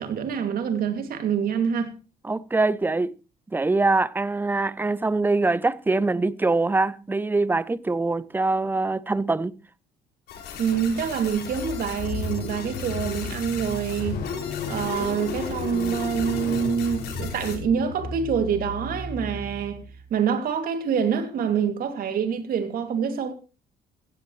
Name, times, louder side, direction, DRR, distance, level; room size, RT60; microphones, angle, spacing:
voice 1, 0.0-1.9 10.6-14.2 14.7-19.8 20.1-23.3, right 7 dB, 60° right, 2.6 m, -26 dB
voice 2, 2.2-3.2 3.5-9.6, right 3 dB, 10° right, 0.6 m, -23 dB
sound 1, 10.3-17.6, left 7 dB, 80° left, 5.8 m, -39 dB
Car / Engine starting, 11.3-20.1, left 4 dB, 60° left, 6.2 m, -33 dB
15.5 x 15.5 x 3.2 m
cardioid pair, 110°, 17 cm